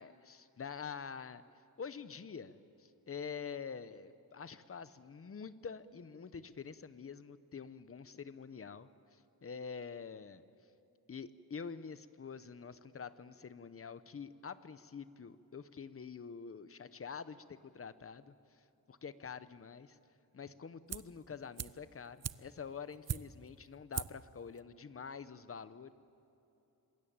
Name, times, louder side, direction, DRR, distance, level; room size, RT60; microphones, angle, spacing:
voice 1, 0.0-1.4 1.8-10.4 11.1-20.0 20.3-25.9, left 6 dB, 35° left, 13 dB, 0.8 m, -47 dB
sound 1, 20.9-21.2 21.6-23.6 23.9-24.3 24.6-24.7, right 9 dB, 45° right, 0.5 m, -41 dB
26.5 x 20.5 x 8.8 m, 2.9 s
wide cardioid pair, 175°, 37 cm